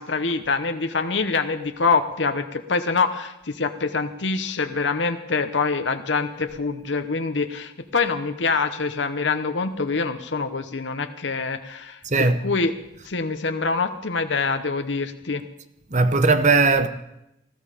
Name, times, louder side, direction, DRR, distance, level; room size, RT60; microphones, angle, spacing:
voice 1, 0.0-12.7 13.0-15.4, left 4 dB, 75° left, 0.9 m, -25 dB
voice 2, 12.0-12.5 15.9-16.9, right 3 dB, 40° right, 0.9 m, -18 dB
20.0 x 13.5 x 5.1 m
head